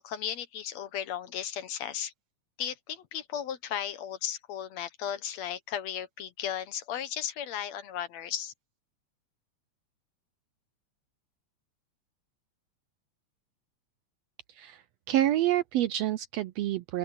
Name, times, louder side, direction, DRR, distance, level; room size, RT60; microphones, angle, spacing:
voice 1, 0.0-2.1 2.6-8.5, left 9 dB, 70° left, 2.3 m, -35 dB
voice 2, 15.1-17.0, right 13 dB, 80° right, 1.5 m, -27 dB
open air
omnidirectional pair, 3.4 m